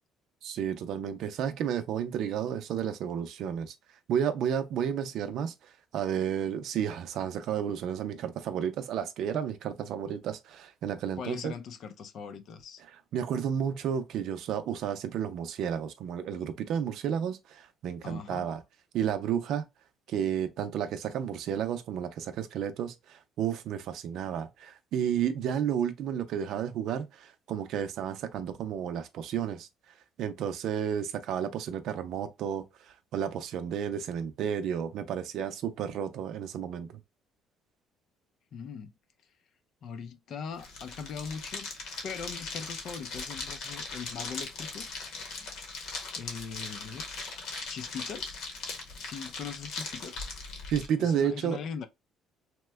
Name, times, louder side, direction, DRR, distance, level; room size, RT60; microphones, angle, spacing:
voice 1, 0.4-3.7 4.1-5.5 5.9-11.5 13.1-18.6 18.9-19.7 20.1-29.7 30.2-32.6 33.1-36.9 50.7-51.6, right 8 dB, 70° right, 0.5 m, -32 dB
voice 2, 11.2-12.8 18.0-18.5 38.5-38.9 39.8-41.7 42.0-44.9 46.2-47.0 47.6-48.4 49.0-50.3 51.0-51.9, left 6 dB, 55° left, 0.5 m, -40 dB
sound 1, 40.5-50.9, left 4 dB, 75° left, 1.0 m, -39 dB
2.9 x 2.2 x 3.3 m
cardioid pair, 115°, 0 cm